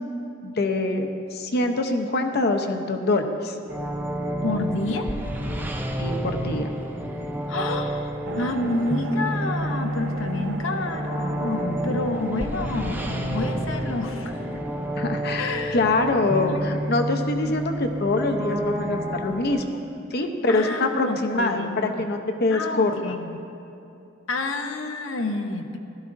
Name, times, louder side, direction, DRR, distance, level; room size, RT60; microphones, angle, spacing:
voice 1, 0.4-3.6 6.0-6.7 15.0-19.8 20.1-23.0, left 2 dB, 55° left, 5 dB, 0.8 m, -24 dB
sound 1, 3.7-19.6, equal, 10° right, 0.6 m, -30 dB
voice 2, 4.4-5.1 7.5-14.5 15.3-15.8 16.3-16.8 20.5-22.0 22.5-23.4 24.3-25.8, left 2 dB, 85° left, 5 dB, 0.8 m, -29 dB
sound 2, 8.2-15.4, right 2 dB, 65° right, 0.8 m, -37 dB
15.5 x 12.5 x 2.6 m, 2.7 s
head